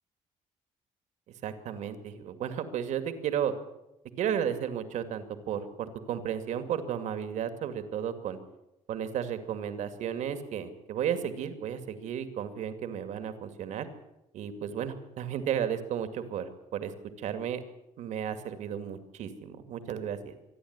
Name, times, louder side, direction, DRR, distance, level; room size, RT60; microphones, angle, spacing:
voice 1, 1.4-3.5 4.2-8.4 8.9-13.9 14.3-16.9 17.2-17.6 18.0-20.3, right 9 dB, 70° right, 9 dB, 2.3 m, -33 dB
26.0 x 11.5 x 9.6 m, 0.93 s
cardioid pair, 170°, 13 cm